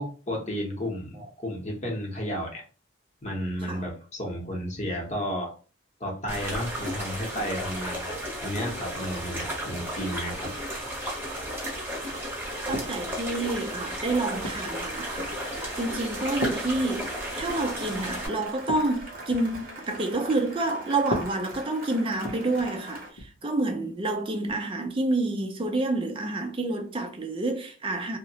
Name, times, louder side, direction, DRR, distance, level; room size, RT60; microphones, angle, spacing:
voice 1, 0.0-2.6 3.2-5.5 6.0-10.5, equal, 35° left, 0.8 m, -32 dB
sound 1, 6.3-18.3, equal, 10° right, 0.8 m, -34 dB
sound 2, 12.7-13.2 13.9-14.8 15.4-15.7 16.4-17.6 17.9-18.1 18.4-19.7 21.0-22.8 23.1-23.4 24.5-24.6, left 1 dB, 85° left, 0.5 m, -37 dB
voice 2, 12.7-28.2, right 2 dB, 25° right, 0.4 m, -29 dB
Cheering / Applause, 14.3-23.1, right 2 dB, 40° right, 0.9 m, -42 dB
2.8 x 2.0 x 2.7 m
head